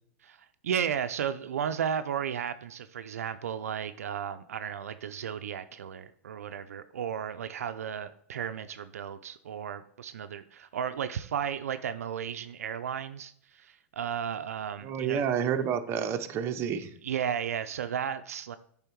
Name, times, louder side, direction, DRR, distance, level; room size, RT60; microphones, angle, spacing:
voice 1, 0.2-15.3 17.0-18.6, right 8 dB, 80° right, 11 dB, 0.4 m, -34 dB
voice 2, 14.8-16.9, right 8 dB, 30° right, 7 dB, 0.7 m, -29 dB
7.9 x 3.5 x 4.5 m, 0.64 s
hypercardioid pair, 120°, 8 cm